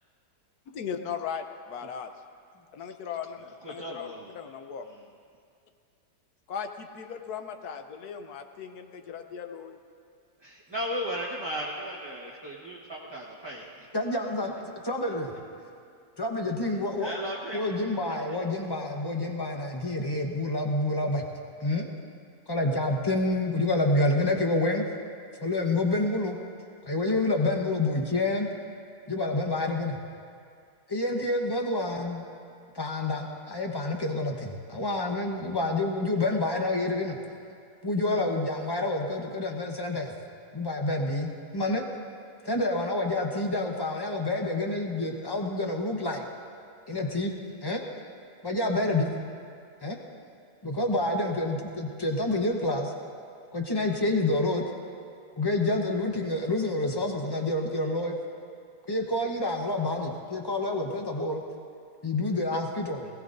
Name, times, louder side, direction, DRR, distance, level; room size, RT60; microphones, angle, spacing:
voice 1, 0.7-2.1 2.7-4.8 6.5-9.8, left 7 dB, 65° left, 7 dB, 1.2 m, -38 dB
voice 2, 3.6-4.3 4.8-5.0 10.4-13.9 17.0-17.6, equal, 15° right, -5 dB, 1.1 m, -36 dB
voice 3, 13.9-15.3 16.2-17.1 17.5-21.2 21.6-21.9 22.5-24.9 25.4-26.4 26.9-28.5 29.1-30.0 30.9-32.3 32.7-37.2 37.8-40.1 40.5-41.8 42.4-46.3 46.9-47.3 47.6-47.8 48.4-49.1 49.8-50.0 50.6-52.9 53.5-54.6 55.4-58.2 58.9-61.4 62.0-63.1, left 2 dB, 20° left, 2 dB, 0.8 m, -28 dB
20.0 x 17.5 x 2.6 m, 2.3 s
omnidirectional pair, 1.9 m